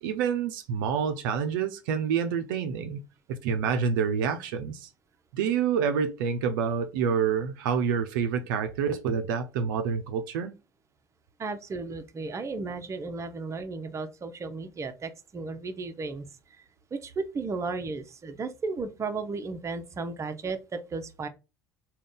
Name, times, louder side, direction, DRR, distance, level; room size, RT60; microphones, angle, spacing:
voice 1, 0.0-3.0 3.3-4.9 5.3-10.5, right 6 dB, 70° right, 0.5 m, -27 dB
voice 2, 11.4-16.3 16.6-16.7 16.9-21.3, right 4 dB, 25° right, 0.6 m, -34 dB
3.6 x 2.3 x 3.7 m
hypercardioid pair, 65°, 11 cm